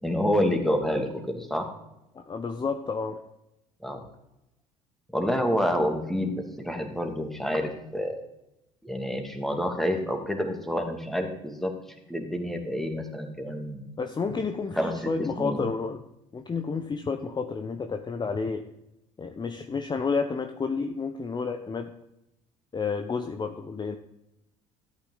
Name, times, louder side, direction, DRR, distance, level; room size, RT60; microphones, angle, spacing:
voice 1, 0.0-1.7 3.8-4.1 5.1-8.2 8.8-11.7 12.1-13.8 14.7-15.1 15.4-15.6, equal, ahead, 3 dB, 2.4 m, -28 dB
voice 2, 2.1-3.2 14.0-16.0 16.3-18.7 19.2-21.9 22.7-24.0, left 4 dB, 25° left, 6 dB, 0.9 m, -30 dB
13.0 x 8.8 x 4.0 m, 0.86 s
hypercardioid pair, 65°, 17 cm